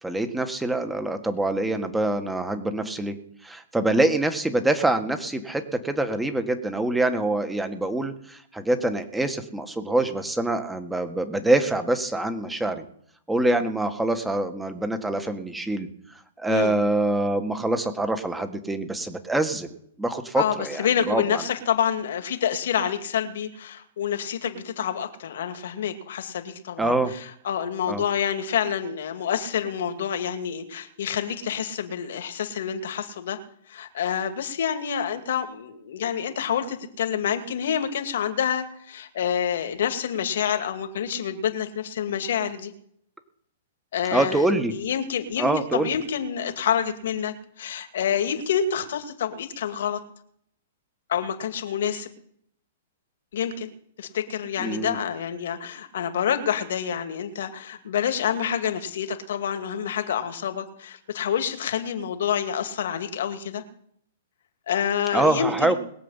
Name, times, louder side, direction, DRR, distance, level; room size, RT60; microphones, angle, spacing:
voice 1, 0.0-3.2 3.4-12.8 13.3-15.9 16.4-21.4 26.8-27.1 27.9-28.0 44.1-44.7 45.4-45.9 54.6-55.0 65.1-65.7, right 2 dB, 5° right, 8 dB, 1.7 m, -25 dB
voice 2, 20.3-27.0 27.4-33.4 33.7-42.7 43.9-50.0 51.1-52.1 53.3-53.7 54.0-63.6 64.7-65.8, left 8 dB, 70° left, 7 dB, 2.2 m, -27 dB
21.0 x 7.6 x 5.7 m, 0.67 s
hypercardioid pair, 130°, 0 cm